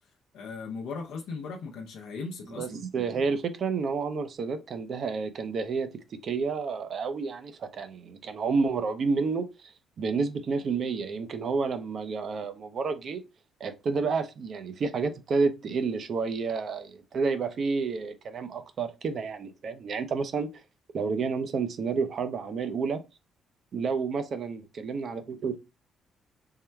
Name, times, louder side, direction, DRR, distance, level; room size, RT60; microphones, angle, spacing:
voice 1, 0.3-2.8, left 4 dB, 85° left, 0.6 m, -38 dB
voice 2, 2.5-13.2 13.6-20.5 20.9-23.0 23.7-25.6, right 4 dB, 55° right, 0.6 m, -30 dB
3.6 x 2.2 x 4.3 m
cardioid pair, 90°, 0 cm